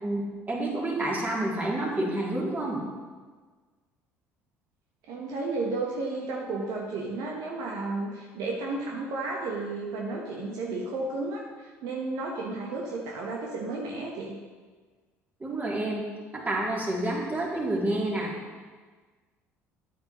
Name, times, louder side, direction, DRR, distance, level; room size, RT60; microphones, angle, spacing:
voice 1, 0.0-2.8 15.4-16.1 16.3-18.3, right 1 dB, 25° right, -4 dB, 2.8 m, -29 dB
voice 2, 5.1-14.4, right 3 dB, 60° right, -1 dB, 1.1 m, -33 dB
9.4 x 9.3 x 3.0 m, 1.4 s
hypercardioid pair, 60°, 7 cm